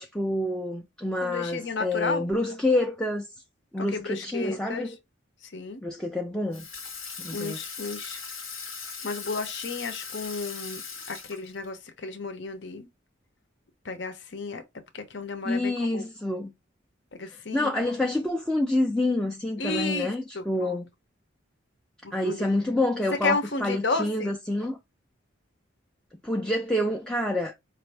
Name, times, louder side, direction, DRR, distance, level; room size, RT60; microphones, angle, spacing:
voice 1, 0.0-3.3 3.7-5.0 5.8-6.7 7.2-7.6 15.4-16.5 17.5-20.8 22.1-24.8 26.2-27.6, left 1 dB, 5° left, 0.4 m, -27 dB
voice 2, 1.2-2.3 3.8-4.9 5.4-5.8 7.3-8.2 9.0-10.8 11.1-12.9 13.8-14.6 14.9-16.1 17.1-18.1 19.6-20.8 22.0-22.4 23.2-24.3, left 3 dB, 60° left, 0.8 m, -33 dB
Water tap faucet / Sink (filling or washing), 6.5-11.8, left 5 dB, 85° left, 1.3 m, -39 dB
4.9 x 2.6 x 3.3 m
head